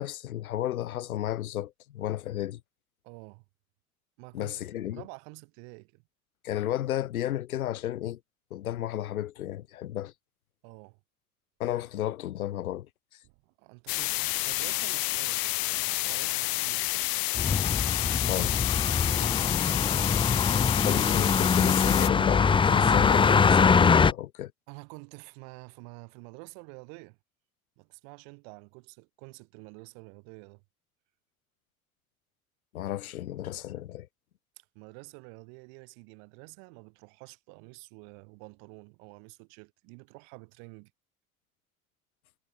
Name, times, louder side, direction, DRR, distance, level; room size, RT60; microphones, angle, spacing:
voice 1, 0.0-2.6 4.3-5.0 6.4-8.2 8.5-10.1 11.6-12.9 18.3-18.5 20.9-24.5 32.7-34.1, left 12 dB, 80° left, 1.0 m, -33 dB
voice 2, 3.0-3.4 4.2-6.0 10.6-11.0 13.2-16.9 18.9-21.0 24.7-27.2 27.8-30.6 34.6-40.9, right 40 dB or more, 65° right, 5.7 m, -49 dB
sound 1, 13.9-22.1, left 21 dB, 55° left, 1.5 m, -29 dB
sound 2, 17.3-24.1, left 5 dB, 15° left, 0.5 m, -23 dB
figure-of-eight pair, 60°, 42 cm